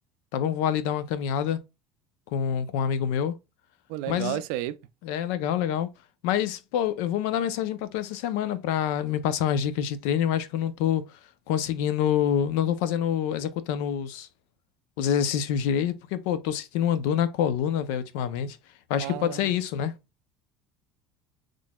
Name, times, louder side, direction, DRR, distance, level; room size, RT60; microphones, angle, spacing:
voice 1, 0.3-1.6 2.3-3.3 4.1-4.4 5.0-5.9 6.2-11.0 11.5-14.3 15.0-18.6 18.9-19.9, left 9 dB, 75° left, 0.5 m, -26 dB
voice 2, 3.9-4.8 19.0-19.5, right 13 dB, 75° right, 0.3 m, -32 dB
4.1 x 3.1 x 2.2 m
cardioid pair, 155°, 0 cm